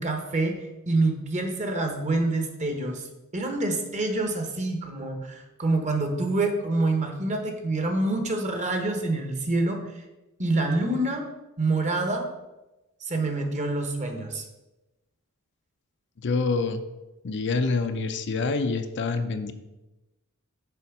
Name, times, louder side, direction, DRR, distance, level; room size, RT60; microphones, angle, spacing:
voice 1, 0.0-3.1 3.3-9.8 10.4-11.3 11.6-12.3 13.0-14.4, right 2 dB, 35° right, 4 dB, 1.1 m, -26 dB
voice 2, 16.2-16.8 17.2-19.5, left 4 dB, 55° left, 8 dB, 0.6 m, -26 dB
7.0 x 4.4 x 5.9 m, 1.0 s
head